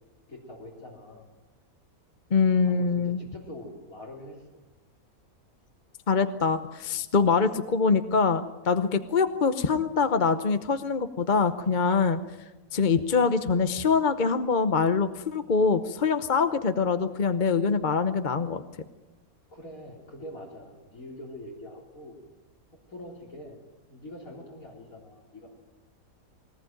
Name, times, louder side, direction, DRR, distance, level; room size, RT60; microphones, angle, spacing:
voice 1, 0.3-1.3 2.6-4.5 7.1-7.3 19.5-22.2 22.9-23.6 23.9-25.5, left 1 dB, 70° left, -3 dB, 4.2 m, -44 dB
voice 2, 2.3-3.2 6.1-12.2 12.7-18.6, left 5 dB, 40° left, 10 dB, 0.9 m, -24 dB
22.0 x 19.0 x 9.2 m, 1.1 s
omnidirectional pair, 1.5 m